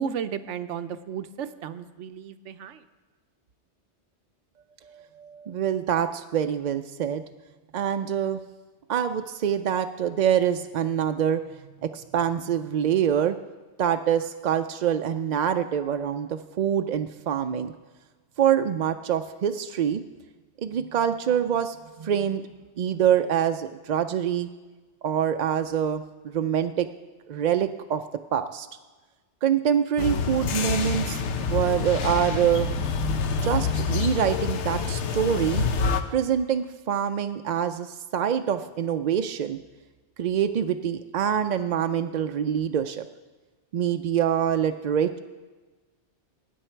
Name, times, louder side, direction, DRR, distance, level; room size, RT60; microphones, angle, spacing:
voice 1, 0.0-2.8, right 7 dB, 85° right, 11 dB, 1.0 m, -34 dB
voice 2, 4.9-7.2 7.7-8.4 8.9-11.4 11.8-13.4 13.8-17.7 18.4-20.0 20.6-22.4 22.8-24.5 25.0-26.9 27.3-28.0 28.3-28.7 29.4-32.7 33.4-35.7 36.1-39.6 40.2-43.1 43.7-45.2, right 9 dB, 60° right, 8 dB, 0.4 m, -25 dB
sound 1, 30.0-36.0, left 5 dB, 80° left, 1.1 m, -27 dB
19.0 x 9.2 x 4.5 m, 1.3 s
omnidirectional pair, 1.2 m